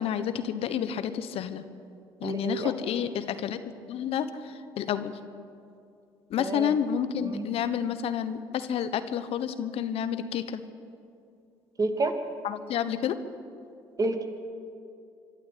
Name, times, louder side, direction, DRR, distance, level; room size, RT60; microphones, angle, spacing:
voice 1, 0.0-1.6 2.2-3.6 3.9-5.2 6.3-10.6 12.4-13.1, left 9 dB, 65° left, 11 dB, 1.2 m, -30 dB
voice 2, 2.2-2.7 6.4-6.8 7.2-7.5 11.8-12.2 14.0-14.3, right 2 dB, 35° right, 5 dB, 2.6 m, -29 dB
25.5 x 12.0 x 8.7 m, 2.5 s
hypercardioid pair, 65°, 11 cm